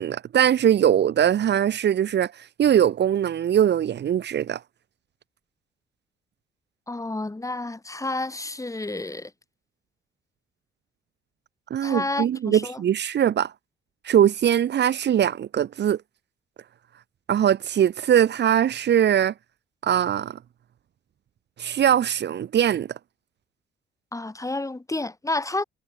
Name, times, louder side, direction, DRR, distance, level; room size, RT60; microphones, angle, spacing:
voice 1, 0.0-4.6 11.7-13.5 14.0-16.0 17.3-19.3 19.8-20.4 21.6-22.9, right 10 dB, 60° right, 1.6 m, -21 dB
voice 2, 6.9-9.3 11.8-12.8 24.1-25.6, left 2 dB, 15° left, 8.0 m, -30 dB
cardioid pair, 90°, 20 cm